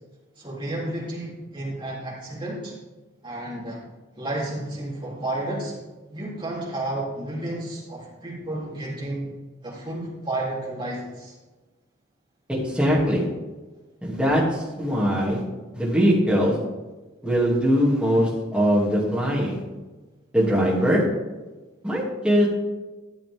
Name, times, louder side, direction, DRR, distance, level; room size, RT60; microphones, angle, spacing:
voice 1, 0.4-2.7 3.2-3.8 4.2-5.7 6.1-9.3 9.6-11.3, right 1 dB, 25° right, -5 dB, 3.3 m, -31 dB
voice 2, 12.5-13.2 14.0-15.4 15.7-16.5 17.2-19.6 20.3-21.0 21.8-22.5, equal, 5° right, -6 dB, 2.6 m, -21 dB
13.0 x 7.6 x 3.6 m, 1.2 s
head